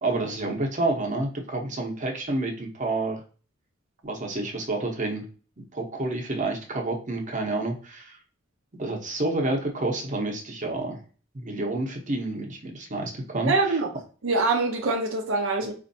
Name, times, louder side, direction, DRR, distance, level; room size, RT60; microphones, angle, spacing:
voice 1, 0.0-3.2 4.0-5.3 5.6-8.2 8.8-11.0 11.3-13.8, right 2 dB, 40° right, 0.8 m, -29 dB
voice 2, 13.4-13.9 14.2-15.7, right 3 dB, 75° right, 0.6 m, -24 dB
4.2 x 2.5 x 2.6 m
head